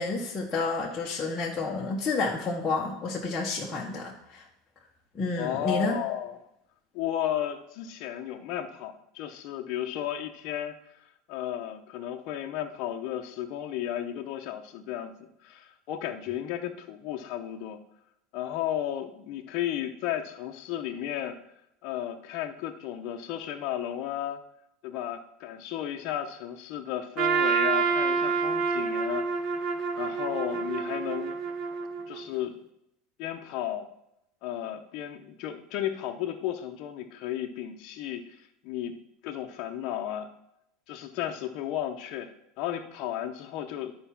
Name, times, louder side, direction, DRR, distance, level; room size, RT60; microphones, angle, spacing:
voice 1, 0.0-4.4 5.1-6.0, left 3 dB, 15° left, -4 dB, 0.9 m, -30 dB
voice 2, 5.4-6.4 6.9-10.7 11.3-17.8 18.3-21.4 21.8-24.4 24.8-29.6 30.0-31.3 32.1-32.6 33.2-33.9 34.4-39.0 39.2-40.3 40.9-42.3 42.6-43.9, left 11 dB, 40° left, 4 dB, 0.7 m, -34 dB
Trumpet, 27.2-32.3, right 5 dB, 30° right, 0.6 m, -28 dB
11.5 x 4.7 x 5.7 m, 0.82 s
supercardioid pair, 180°, 0 cm